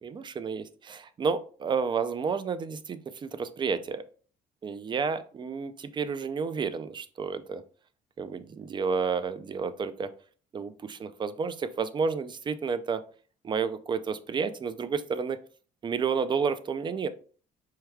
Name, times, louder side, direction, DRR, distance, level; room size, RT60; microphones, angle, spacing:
voice 1, 0.0-4.0 4.6-7.6 8.2-10.1 10.5-13.0 13.4-15.4 15.8-17.1, right 5 dB, 25° right, 12 dB, 0.4 m, -31 dB
4.6 x 2.2 x 3.5 m, 0.42 s
cardioid pair, 110°, 17 cm